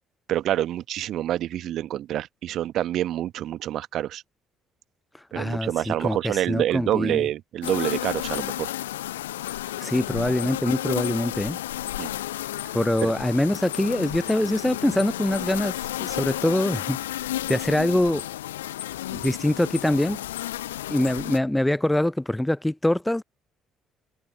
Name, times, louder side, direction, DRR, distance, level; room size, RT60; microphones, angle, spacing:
voice 1, 0.3-4.2 5.3-8.7 12.0-12.1 13.0-13.1, right 12 dB, 55° right, 1.3 m, -27 dB
voice 2, 5.3-7.3 9.8-11.6 12.7-17.0 17.5-18.2 19.1-20.2 20.9-23.2, left 1 dB, 5° left, 0.4 m, -24 dB
sound 1, 7.6-21.4, left 14 dB, 75° left, 0.5 m, -32 dB
figure-of-eight pair, 50°, 0 cm